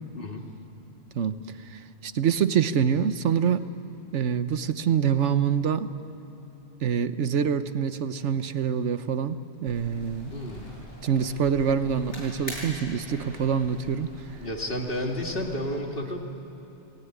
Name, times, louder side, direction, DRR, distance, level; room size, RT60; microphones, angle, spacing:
voice 1, 1.7-3.7 4.1-5.9 6.8-10.3 11.0-14.1, right 7 dB, 80° right, 11 dB, 1.2 m, -25 dB
sound 1, 9.7-15.6, left 1 dB, 75° left, 7.4 m, -43 dB
voice 2, 10.3-10.7 14.4-16.2, left 1 dB, 50° left, 1 dB, 2.5 m, -31 dB
29.5 x 19.0 x 9.7 m, 2.9 s
omnidirectional pair, 1.2 m